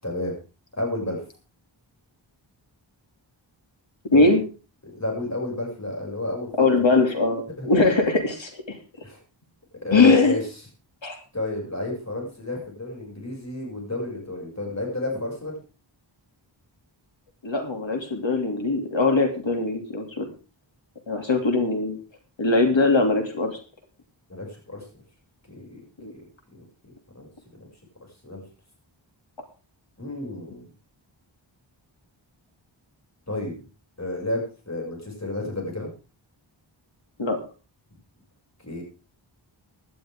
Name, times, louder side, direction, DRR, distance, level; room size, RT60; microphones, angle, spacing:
voice 1, 0.0-0.3 0.7-1.2 4.1-4.4 4.8-6.5 6.8-7.0 7.6-7.7 9.0-9.2 9.8-10.4 11.3-15.6 24.3-24.9 25.5-25.8 26.1-26.2 26.5-26.6 27.2-27.3 28.2-28.5 30.0-30.7 33.3-33.7 34.0-35.9 38.6-38.8, left 2 dB, 35° left, 0 dB, 7.0 m, -31 dB
voice 2, 4.1-4.4 6.5-8.8 9.9-10.4 11.0-11.2 17.4-20.3 21.1-22.0 22.4-23.6 26.0-26.1 37.2-37.4, left 3 dB, 70° left, 4 dB, 3.1 m, -21 dB
17.0 x 12.0 x 3.8 m, 0.33 s
wide cardioid pair, 75°, 47 cm